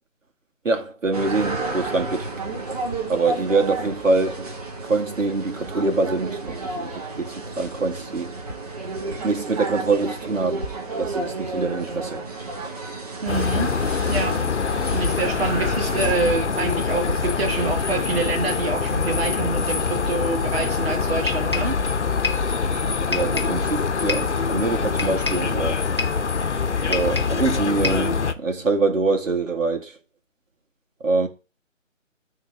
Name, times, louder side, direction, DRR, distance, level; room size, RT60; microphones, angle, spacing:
voice 1, 0.6-2.3 3.1-4.6 4.8-8.3 9.2-10.6 11.0-12.2 23.1-25.8 26.8-30.0 31.0-31.3, right 3 dB, 75° right, 2.2 m, -24 dB
sound 1, 1.1-16.1, right 3 dB, 30° right, 1.7 m, -32 dB
voice 2, 13.2-13.7 14.1-14.4 14.9-21.8, right 3 dB, 50° right, 1.7 m, -26 dB
sound 2, 13.3-28.3, left 5 dB, 60° left, 0.9 m, -24 dB
sound 3, 21.3-21.8 22.2-22.5 23.1-23.6 24.1-24.4 25.0-25.5 26.0-26.3 26.9-27.4 27.8-28.1, left 3 dB, 20° left, 0.6 m, -28 dB
12.0 x 4.0 x 3.7 m
figure-of-eight pair, 165°, 39 cm